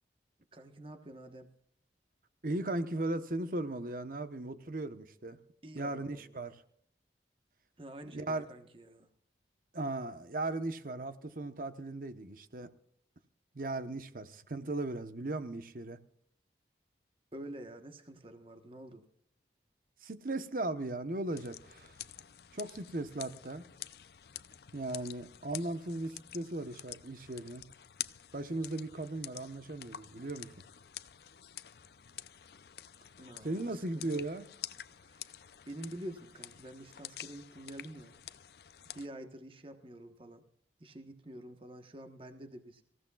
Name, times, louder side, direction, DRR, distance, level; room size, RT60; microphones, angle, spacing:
voice 1, 0.5-1.5 5.6-6.4 7.8-9.1 17.3-19.1 33.2-34.2 35.0-35.3 35.7-38.2 38.8-40.4 40.8-42.8, right 1 dB, 30° right, 1.2 m, -48 dB
voice 2, 2.4-5.4 5.7-6.6 8.1-8.5 9.7-12.7 13.5-16.0 20.0-21.9 22.5-23.6 24.7-27.6 28.3-30.5 33.4-34.4, right 2 dB, 50° right, 1.0 m, -37 dB
sound 1, 21.4-39.1, left 12 dB, 60° left, 0.5 m, -48 dB
25.0 x 15.5 x 2.4 m
head